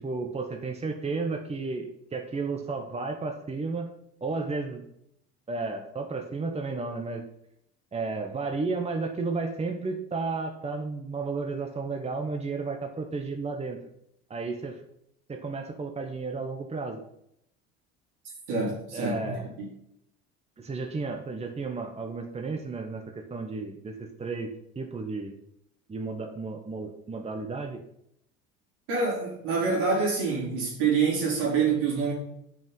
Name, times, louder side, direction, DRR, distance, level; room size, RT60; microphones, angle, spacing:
voice 1, 0.0-3.9 4.2-4.8 5.5-7.2 7.9-13.8 14.3-14.7 15.3-17.0 18.9-19.5 20.6-25.4 25.9-27.8, right 3 dB, 20° right, 4 dB, 1.1 m, -33 dB
voice 2, 18.5-19.3 19.6-19.7 28.9-32.1, right 5 dB, 70° right, -2 dB, 3.4 m, -26 dB
6.8 x 5.9 x 5.5 m, 0.76 s
hypercardioid pair, 70°, 31 cm